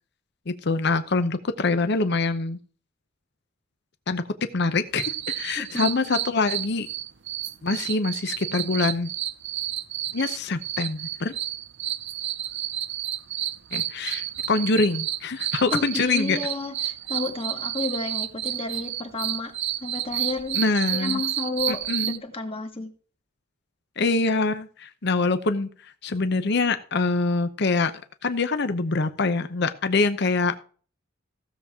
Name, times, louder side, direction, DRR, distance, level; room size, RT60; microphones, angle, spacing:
voice 1, 0.5-2.6 4.1-4.2 4.5-6.9 7.6-9.1 10.1-11.3 13.7-16.4 20.5-21.2 21.7-22.2 24.0-25.7 26.0-27.9 28.2-30.6, left 3 dB, 55° left, 9 dB, 0.7 m, -24 dB
sound 1, 5.0-22.2, right 12 dB, 60° right, 0.6 m, -31 dB
voice 2, 5.6-6.2 15.7-19.5 19.8-20.6 20.9-22.9, left 2 dB, 30° left, 5 dB, 1.6 m, -31 dB
15.5 x 7.2 x 3.6 m, 0.42 s
head